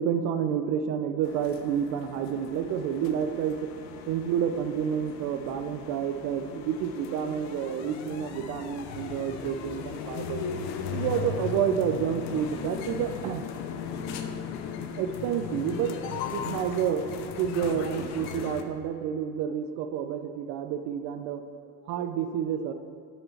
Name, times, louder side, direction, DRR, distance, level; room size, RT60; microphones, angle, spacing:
voice 1, 0.0-3.7 4.1-10.4 10.9-13.5 15.0-15.9 16.3-21.4 21.9-22.7, right 8 dB, 65° right, 8 dB, 0.5 m, -29 dB
sound 1, 1.2-18.6, left 7 dB, 65° left, 0.7 m, -37 dB
7.7 x 5.1 x 5.7 m, 2.2 s
cardioid pair, 140°, 30 cm